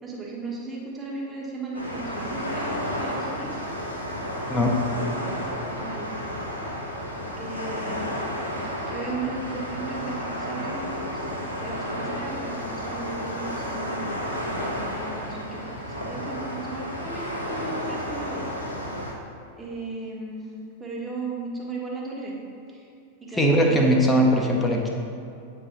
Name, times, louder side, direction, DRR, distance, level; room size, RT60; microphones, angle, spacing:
voice 1, 0.0-3.8 5.7-6.1 7.4-8.0 8.9-11.3 11.6-14.3 14.7-18.6 19.6-20.5 20.8-22.4 22.7-22.9 23.2-23.9, right 3 dB, 15° right, -3 dB, 1.2 m, -36 dB
sound 1, 1.7-19.1, equal, 85° left, 1.0 m, -32 dB
voice 2, 23.4-24.9, equal, 10° left, 0 dB, 0.7 m, -20 dB
8.5 x 4.7 x 2.9 m, 2.5 s
figure-of-eight pair, 90°, 0 cm